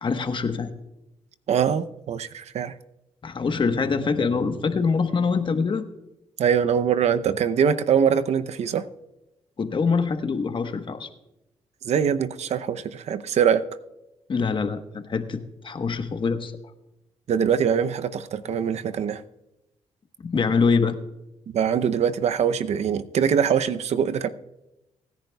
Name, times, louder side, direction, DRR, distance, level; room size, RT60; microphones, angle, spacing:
voice 1, 0.0-0.7 3.2-5.9 9.6-11.1 14.3-16.5 20.2-21.0, left 5 dB, 45° left, 8 dB, 1.2 m, -24 dB
voice 2, 1.5-2.7 6.4-8.8 11.8-13.6 17.3-19.2 21.5-24.3, right 7 dB, 70° right, 11 dB, 0.7 m, -23 dB
24.5 x 10.5 x 2.3 m, 0.92 s
cardioid pair, 70°, 12 cm